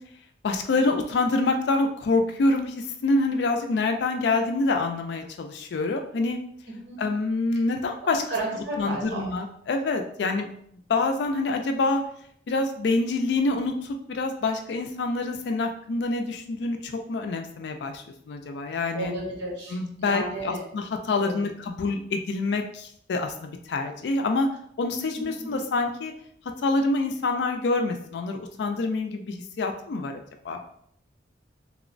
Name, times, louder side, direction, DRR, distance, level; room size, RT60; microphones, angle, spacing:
voice 1, 0.4-6.4 7.0-8.2 8.8-10.5 10.9-12.0 12.5-19.1 19.7-24.5 24.8-26.1 26.6-30.6, left 3 dB, 70° left, 5 dB, 0.3 m, -26 dB
voice 2, 6.7-7.0 8.0-9.4 18.9-20.6 21.2-21.5 25.4-25.5, right 2 dB, 85° right, -2 dB, 0.9 m, -33 dB
2.9 x 2.0 x 2.5 m, 0.66 s
head